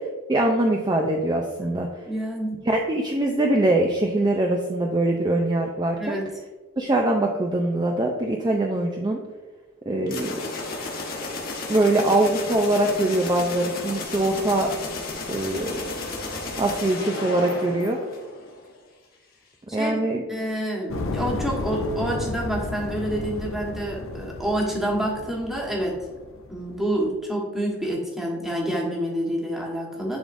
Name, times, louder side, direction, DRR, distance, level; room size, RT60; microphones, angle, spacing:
voice 1, 0.3-2.1 2.6-6.2 6.8-9.2 9.9-10.4 11.7-14.7 15.3-15.9 16.6-18.0 19.7-20.2, right 1 dB, 20° right, 1 dB, 0.4 m, -23 dB
voice 2, 2.1-2.6 6.0-6.2 19.7-20.0 20.3-26.0 26.5-30.2, right 1 dB, ahead, -3 dB, 1.2 m, -28 dB
sound 1, 10.1-18.7, left 3 dB, 45° left, 1.2 m, -33 dB
sound 2, 20.9-27.1, left 3 dB, 65° left, 0.6 m, -33 dB
10.5 x 3.8 x 2.5 m, 1.3 s
head